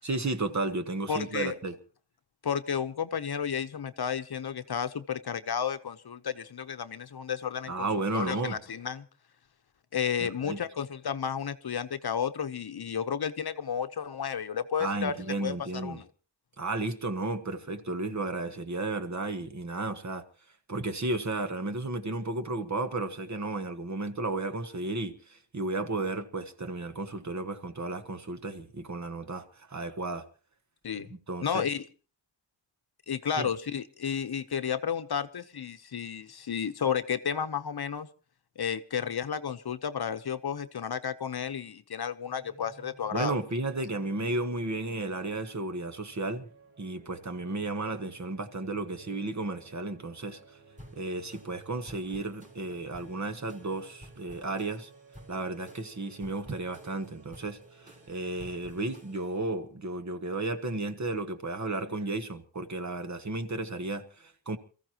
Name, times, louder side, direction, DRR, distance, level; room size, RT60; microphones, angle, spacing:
voice 1, 0.0-1.8 7.7-8.6 10.2-10.6 14.8-16.0 16.6-20.2 20.7-30.2 31.3-31.6 33.4-33.5 43.1-46.5 46.8-50.6 50.9-54.9 55.3-64.6, right 2 dB, 40° right, 1.4 m, -33 dB
voice 2, 1.1-1.6 2.4-7.9 8.1-9.0 9.9-16.0 30.8-31.1 31.4-31.8 33.1-38.1 38.6-43.4, left 7 dB, 60° left, 0.9 m, -32 dB
sound 1, 42.2-59.0, right 4 dB, 90° right, 5.5 m, -56 dB
sound 2, 50.8-59.5, equal, 15° right, 3.9 m, -54 dB
28.0 x 15.0 x 3.0 m
wide cardioid pair, 145°, 44 cm